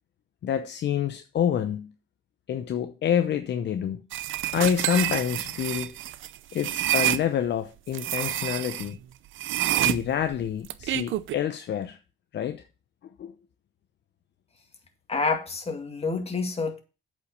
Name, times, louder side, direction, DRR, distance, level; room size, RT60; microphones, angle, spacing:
voice 1, 0.4-1.9 2.5-4.0 4.5-5.9 6.5-9.0 9.8-12.0 12.3-12.6 13.2-13.3, left 9 dB, 60° left, 0.8 m, -27 dB
sound 1, 4.1-7.2 7.9-8.9 9.4-11.4, right 14 dB, 75° right, 0.6 m, -28 dB
voice 2, 15.1-16.8, left 4 dB, 30° left, 2.3 m, -28 dB
8.2 x 5.4 x 6.7 m
cardioid pair, 90°, 20 cm